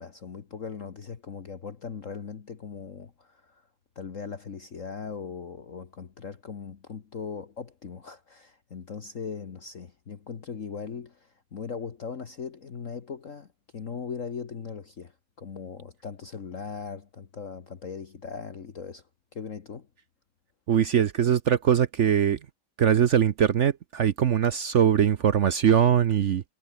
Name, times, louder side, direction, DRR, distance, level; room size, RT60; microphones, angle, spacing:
voice 1, 0.0-3.6 3.9-13.5 13.7-19.0 19.3-19.9, left 6 dB, 45° left, 1.7 m, -39 dB
voice 2, 20.7-22.4 22.8-26.4, right 9 dB, 60° right, 0.8 m, -22 dB
omnidirectional pair, 2.0 m